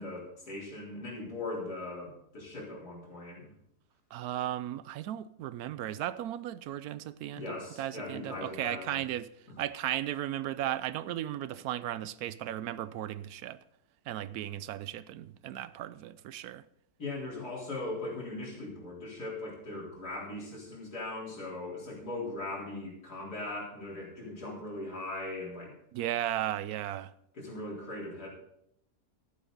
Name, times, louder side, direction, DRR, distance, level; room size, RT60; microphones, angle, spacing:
voice 1, 0.0-3.5 7.3-9.0 17.0-25.7 27.4-28.3, left 2 dB, 80° left, 4.5 m, -39 dB
voice 2, 4.1-13.6 14.1-16.6 25.9-27.1, right 12 dB, 75° right, 1.1 m, -36 dB
12.5 x 11.5 x 4.0 m
omnidirectional pair, 1.6 m